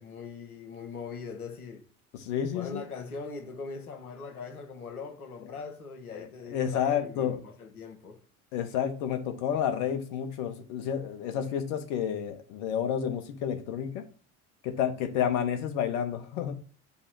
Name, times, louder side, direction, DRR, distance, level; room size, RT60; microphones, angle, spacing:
voice 1, 0.0-1.8 2.5-8.2, left 5 dB, 85° left, 1.0 m, -41 dB
voice 2, 2.1-2.8 6.1-7.4 8.5-14.0 14.6-16.5, left 9 dB, 60° left, 1.0 m, -30 dB
5.3 x 2.0 x 4.6 m
figure-of-eight pair, 70°, 43 cm